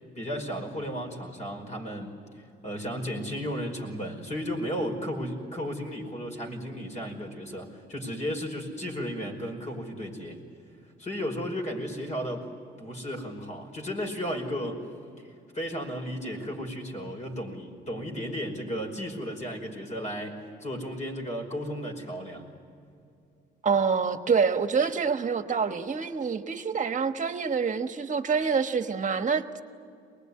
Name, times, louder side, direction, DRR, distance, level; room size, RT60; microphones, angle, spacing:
voice 1, 0.2-2.2 2.6-10.4 11.0-12.5 12.8-14.8 15.5-22.5, equal, 35° left, 5.3 m, -34 dB
voice 2, 23.6-29.6, right 5 dB, 40° right, 1.4 m, -26 dB
23.5 x 20.5 x 9.8 m
cardioid pair, 90°, 20 cm